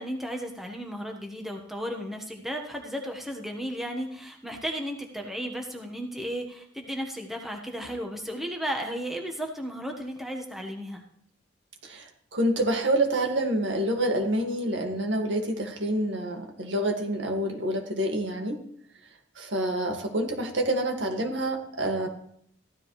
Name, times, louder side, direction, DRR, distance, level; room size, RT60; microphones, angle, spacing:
voice 1, 0.0-11.0, equal, ahead, 2 dB, 1.3 m, -34 dB
voice 2, 11.8-18.6 19.4-22.1, right 1 dB, 65° right, 3 dB, 1.9 m, -27 dB
15.0 x 13.0 x 3.2 m, 0.67 s
head